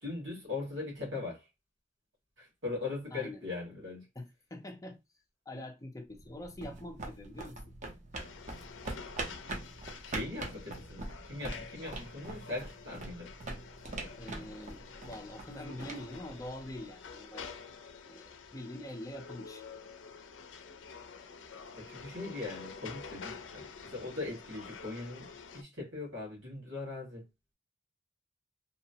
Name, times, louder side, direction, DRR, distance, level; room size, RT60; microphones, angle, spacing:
voice 1, 0.0-1.5 2.4-4.1 5.5-5.7 10.0-13.3 21.7-25.3 25.5-27.2, left 3 dB, 75° right, 1.5 m, -40 dB
voice 2, 3.1-3.4 4.2-5.0 5.5-7.6 14.2-14.8 15.1-17.4 18.1-19.6, left 1 dB, 20° left, 0.4 m, -44 dB
sound 1, 6.2-17.0, right 2 dB, 40° right, 0.5 m, -43 dB
sound 2, 8.1-25.6, left 5 dB, 80° left, 0.5 m, -49 dB
2.9 x 2.0 x 2.7 m
head